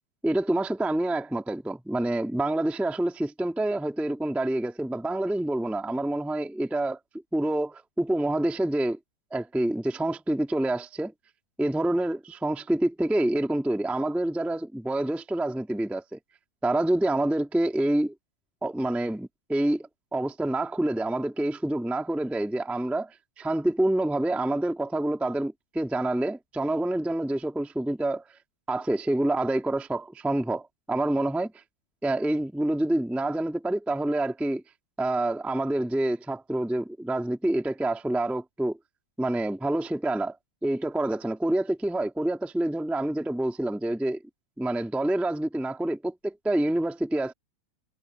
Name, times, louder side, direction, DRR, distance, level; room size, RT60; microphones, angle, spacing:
voice 1, 0.2-7.0 7.3-9.0 9.3-11.1 11.6-16.2 16.6-18.1 18.6-28.2 28.7-31.5 32.0-34.6 35.0-38.8 39.2-40.3 40.6-44.2 44.6-47.3, right 1 dB, ahead, 0.3 m, -27 dB
omnidirectional pair, 4.9 m